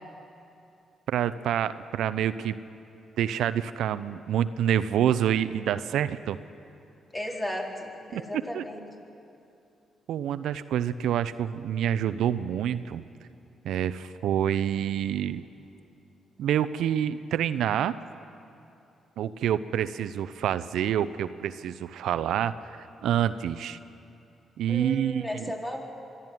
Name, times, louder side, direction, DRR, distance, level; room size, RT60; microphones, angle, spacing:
voice 1, 1.1-2.6 3.2-6.4 8.1-8.6 10.1-13.0 13.6-15.4 16.4-17.9 19.2-23.8 24.6-25.5, right 10 dB, 75° right, 13 dB, 0.6 m, -27 dB
voice 2, 7.1-8.8 24.7-25.8, left 1 dB, 20° left, 0 dB, 4.1 m, -35 dB
24.0 x 13.0 x 9.1 m, 2.6 s
hypercardioid pair, 50°, 0 cm